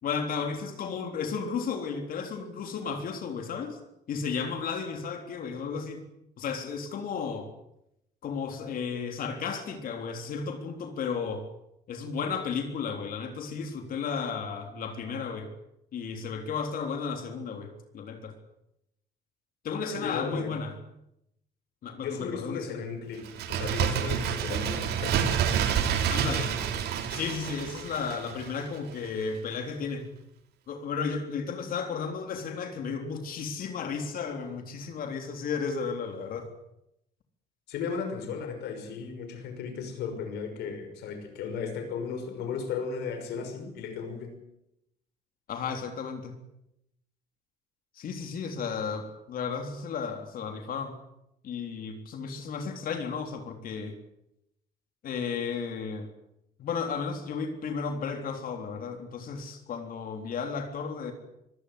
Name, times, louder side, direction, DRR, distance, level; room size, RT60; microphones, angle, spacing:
voice 1, 0.0-3.8 4.1-6.0 6.4-7.5 8.2-11.4 11.9-15.5 15.9-18.4 19.6-20.7 21.8-22.8 26.1-26.5 27.1-30.0 30.7-36.5 45.5-46.4 48.0-51.0 51.4-54.0 55.0-56.1 56.6-61.1, left 5 dB, 60° left, 5 dB, 3.6 m, -33 dB
voice 2, 19.9-20.5 22.0-25.3 37.7-44.3, left 6 dB, 80° left, 7 dB, 5.9 m, -35 dB
Bird, 23.2-28.8 29.1-29.2, right 8 dB, 75° right, 3.1 m, -28 dB
24.5 x 17.0 x 8.3 m, 0.82 s
cardioid pair, 110°, 17 cm